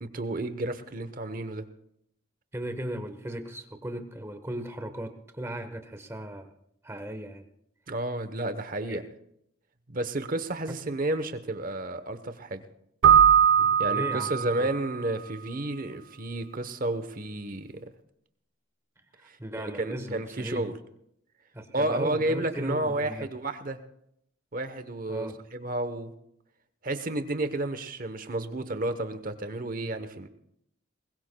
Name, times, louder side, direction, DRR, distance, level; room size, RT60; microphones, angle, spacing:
voice 1, 0.0-1.6 7.9-9.0 9.9-12.6 13.8-17.9 19.3-19.4 19.8-20.7 21.7-23.8 24.5-26.1 26.8-30.3, right 2 dB, 40° right, 11 dB, 1.0 m, -31 dB
voice 2, 2.5-6.5 6.8-7.5 8.9-9.0 10.7-10.8 13.6-14.7 19.2-20.7 21.5-23.3 25.1-25.4, right 1 dB, 15° right, 8 dB, 1.1 m, -37 dB
Keyboard (musical), 13.0-14.8, right 8 dB, 80° right, 0.7 m, -20 dB
21.0 x 20.5 x 2.3 m, 0.76 s
head